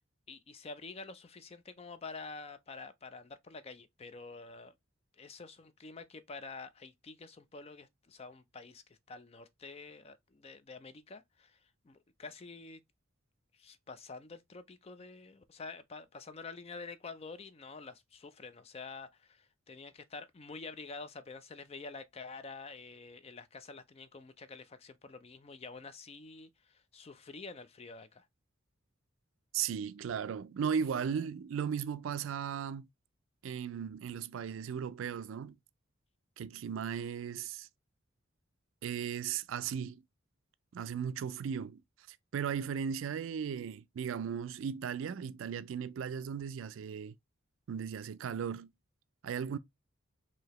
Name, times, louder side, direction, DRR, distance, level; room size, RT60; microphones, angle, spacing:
voice 1, 0.3-4.7 5.2-11.6 11.8-12.8 13.5-28.3, left 4 dB, 30° left, 0.4 m, -48 dB
voice 2, 29.5-32.9 33.4-35.6 36.4-37.7 38.8-40.0 40.7-41.8 42.1-47.1 47.7-48.7 49.2-49.6, right 7 dB, 70° right, 0.3 m, -36 dB
4.7 x 2.8 x 2.9 m
head